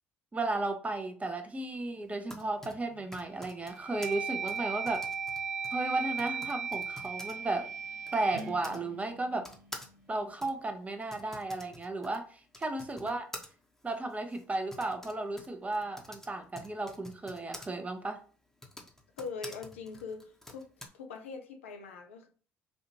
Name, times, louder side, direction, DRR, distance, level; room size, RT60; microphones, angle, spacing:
voice 1, 0.3-5.0 5.7-7.7 8.1-9.5 10.1-13.3 13.8-18.2, right 2 dB, 20° right, 0.7 m, -34 dB
Typing, 2.0-8.8 9.4-17.7 18.5-20.9, left 1 dB, 5° left, 1.0 m, -50 dB
sound 1, 2.6-3.1 3.6-9.7, right 6 dB, 85° right, 0.7 m, -37 dB
voice 2, 19.2-20.7 20.9-22.3, left 5 dB, 85° left, 0.6 m, -42 dB
4.2 x 2.5 x 2.9 m
hypercardioid pair, 55°, 7 cm